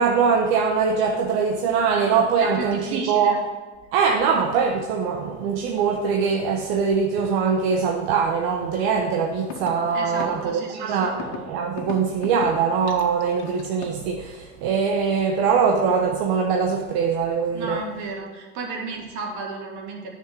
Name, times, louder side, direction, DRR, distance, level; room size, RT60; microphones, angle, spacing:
voice 1, 0.0-3.4 3.9-17.8, right 6 dB, 85° right, 2 dB, 1.1 m, -22 dB
voice 2, 2.4-3.4 9.9-11.1 17.5-20.1, right 4 dB, 70° right, 0 dB, 2.7 m, -33 dB
sound 1, 9.0-9.1 9.5-9.7 10.2-10.3 11.2-11.4 11.8-12.5 12.9-14.0, left 9 dB, 80° left, 1.6 m, -35 dB
9.7 x 6.4 x 6.1 m, 1.4 s
cardioid pair, 130°, 31 cm